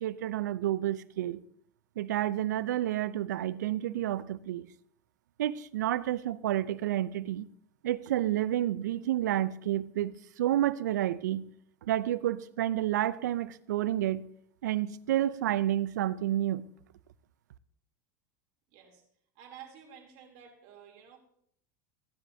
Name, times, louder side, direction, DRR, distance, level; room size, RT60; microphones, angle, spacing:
voice 1, 0.0-1.4 2.0-4.7 5.4-7.5 7.8-11.5 11.8-14.2 14.6-16.7, right 12 dB, 85° right, 0.5 m, -30 dB
voice 2, 18.7-19.0 19.3-21.2, right 8 dB, 65° right, 3.0 m, -51 dB
16.0 x 9.6 x 2.7 m
hypercardioid pair, 95°, 9 cm